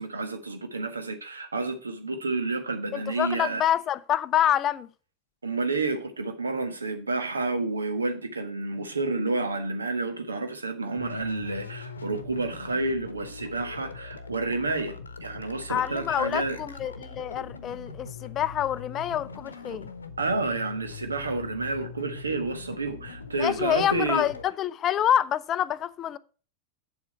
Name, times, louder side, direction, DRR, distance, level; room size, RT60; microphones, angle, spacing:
voice 1, 0.0-3.6 5.4-14.9 15.2-16.6 19.7-19.8 20.2-24.3, right 3 dB, 75° right, 1.3 m, -30 dB
voice 2, 2.9-4.9 15.7-19.9 23.4-26.2, left 10 dB, 30° left, 0.4 m, -27 dB
sound 1, 10.9-24.4, left 4 dB, 75° left, 0.9 m, -41 dB
8.0 x 7.4 x 4.5 m
figure-of-eight pair, 90°, 0 cm